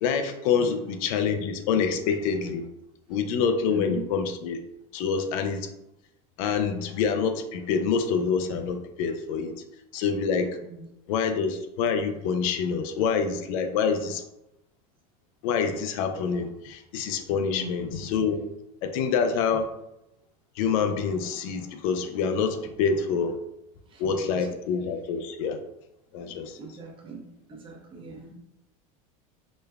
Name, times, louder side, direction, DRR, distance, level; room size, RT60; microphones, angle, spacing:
voice 1, 0.0-2.6 3.1-4.6 4.9-5.7 6.4-9.5 9.9-10.5 11.1-14.2 15.4-18.4 18.8-19.7 20.6-23.4 24.0-25.6 26.1-26.6, left 6 dB, 70° left, 7 dB, 0.5 m, -26 dB
voice 2, 3.7-4.0 10.6-10.9 17.5-17.8 23.9-24.3 26.6-27.2 27.5-28.3, right 2 dB, 30° right, 1 dB, 0.7 m, -39 dB
5.1 x 2.1 x 2.3 m, 0.85 s
supercardioid pair, 130°, 18 cm